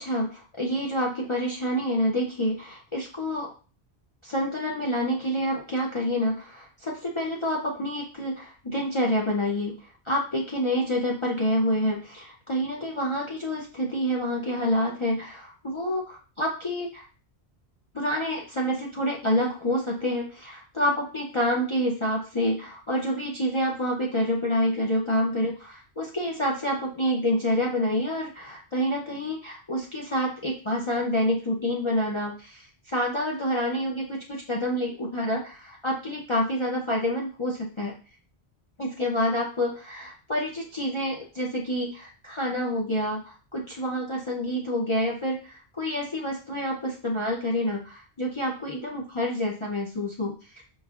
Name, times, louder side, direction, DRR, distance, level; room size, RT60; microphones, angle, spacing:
voice 1, 0.0-3.5 4.2-17.1 17.9-37.9 38.8-50.6, equal, 35° left, -2 dB, 0.5 m, -28 dB
5.2 x 3.1 x 2.3 m, 0.37 s
omnidirectional pair, 1.1 m